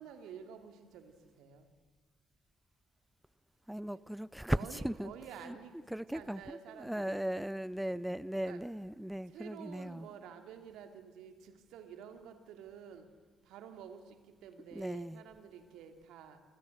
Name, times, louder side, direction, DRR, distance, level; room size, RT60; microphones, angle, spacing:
voice 1, 0.0-1.7 3.9-4.0 4.4-5.8 6.1-7.2 8.4-8.6 9.3-13.1 13.4-16.4, right 8 dB, 70° right, 7 dB, 2.6 m, -50 dB
voice 2, 3.7-5.1 5.5-5.6 5.9-10.1 14.7-15.2, right 1 dB, 5° right, 19 dB, 0.7 m, -37 dB
28.0 x 25.5 x 6.7 m, 1.5 s
hypercardioid pair, 45°, 0 cm